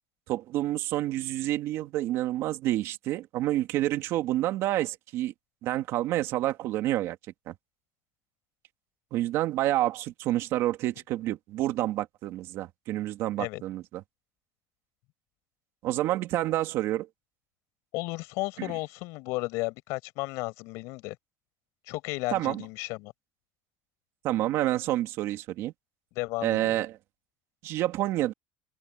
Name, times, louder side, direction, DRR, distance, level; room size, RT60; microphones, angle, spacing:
voice 1, 0.3-5.3 5.6-7.2 7.5-7.6 9.1-14.0 15.8-17.1 22.3-22.6 24.2-25.7 26.4-27.0 27.6-28.3, right 14 dB, 55° right, 2.7 m, -28 dB
voice 2, 17.9-21.2 21.9-23.1 26.1-26.8, left 23 dB, 70° left, 6.4 m, -34 dB
cardioid pair, 165°, 6 cm